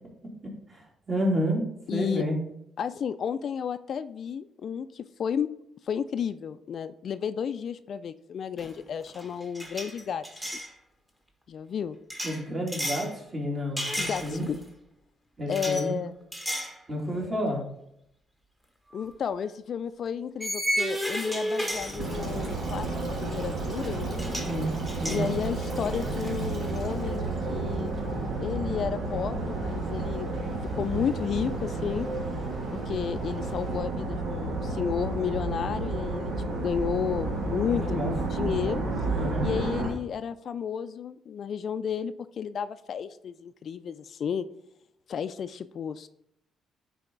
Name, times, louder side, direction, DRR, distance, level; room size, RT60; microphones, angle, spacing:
voice 1, 1.1-1.6 1.9-2.4 12.2-14.5 15.4-16.0 16.9-17.6 24.4-25.3 37.6-38.1 39.1-39.4, equal, 30° right, -2 dB, 2.7 m, -30 dB
voice 2, 1.9-2.3 2.8-5.5 5.9-10.4 11.5-12.0 14.0-14.6 15.5-16.1 18.9-24.2 25.1-27.9 28.4-30.3 30.7-32.1 32.7-38.8 39.4-44.5 45.1-46.1, left 7 dB, 60° left, 12 dB, 0.3 m, -32 dB
sound 1, 8.6-8.8 9.1-10.7 12.1-13.1 13.8-14.6 15.5-15.8 16.3-16.8 17.2-17.4 18.9-19.0 20.4-22.5 23.8-23.9 24.2-24.5 24.9-26.3, equal, 10° right, 1.4 m, -33 dB
Stream, 22.0-33.8, right 1 dB, 50° right, 2.8 m, -46 dB
sound 2, 22.0-39.9, right 2 dB, 75° right, 1.6 m, -31 dB
9.7 x 4.1 x 3.9 m, 0.76 s
cardioid pair, 90°, 0 cm